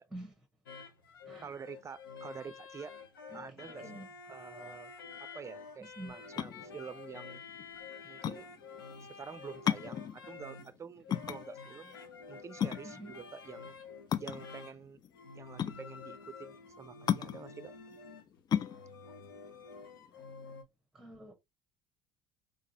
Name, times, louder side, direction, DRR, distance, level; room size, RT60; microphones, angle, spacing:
voice 1, 0.1-0.5 1.2-1.5 3.3-4.1 5.8-6.1 12.8-13.2 20.9-21.3, right 1 dB, 5° right, 1.0 m, -48 dB
sound 1, 0.7-20.6, left 5 dB, 85° left, 0.8 m, -49 dB
voice 2, 1.4-2.9 3.3-3.9 4.3-4.9 5.3-7.4 8.0-8.5 9.1-12.0 12.3-13.7 14.2-15.0 15.4-17.7, right 6 dB, 25° right, 0.5 m, -47 dB
sound 2, 6.2-20.6, left 9 dB, 35° left, 0.4 m, -36 dB
3.8 x 3.0 x 2.7 m
hypercardioid pair, 65°, 11 cm